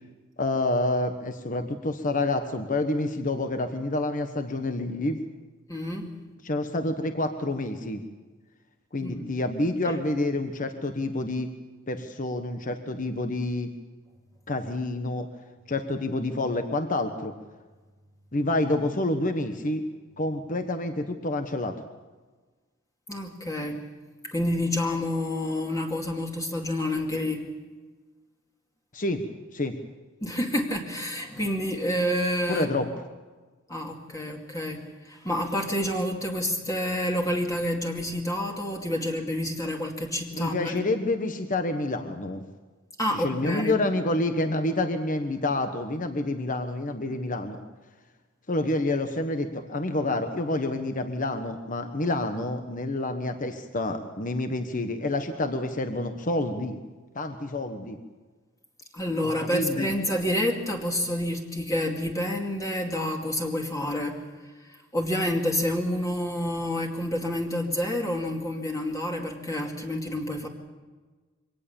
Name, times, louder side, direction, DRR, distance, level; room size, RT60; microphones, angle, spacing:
voice 1, 0.4-5.2 6.4-8.0 8.9-11.5 11.9-13.7 14.5-15.3 15.7-17.3 18.3-19.8 20.2-21.7 28.9-29.2 29.5-29.7 32.5-32.9 40.3-42.4 43.1-47.6 48.5-56.8 57.1-58.0 59.2-59.9, left 2 dB, 40° left, 7 dB, 1.3 m, -28 dB
voice 2, 5.7-6.2 9.0-9.3 9.8-10.0 23.1-23.8 24.2-27.5 30.2-32.7 33.7-40.8 43.0-43.8 58.9-64.2 64.6-70.5, left 1 dB, 15° left, 1 dB, 2.3 m, -28 dB
24.0 x 18.0 x 7.1 m, 1.3 s
head